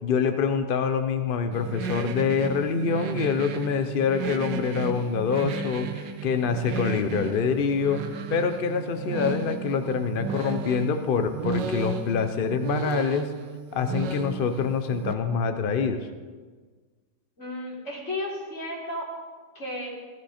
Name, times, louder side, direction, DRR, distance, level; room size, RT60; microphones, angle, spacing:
voice 1, 0.0-8.0 8.3-13.3 13.7-16.1, left 6 dB, 65° left, 8 dB, 0.5 m, -26 dB
sound 1, 1.5-15.1, right 5 dB, 70° right, 1.5 m, -34 dB
voice 2, 17.4-19.1 19.6-19.9, left 1 dB, 40° left, -4 dB, 3.8 m, -33 dB
16.5 x 12.5 x 4.3 m, 1.5 s
omnidirectional pair, 2.0 m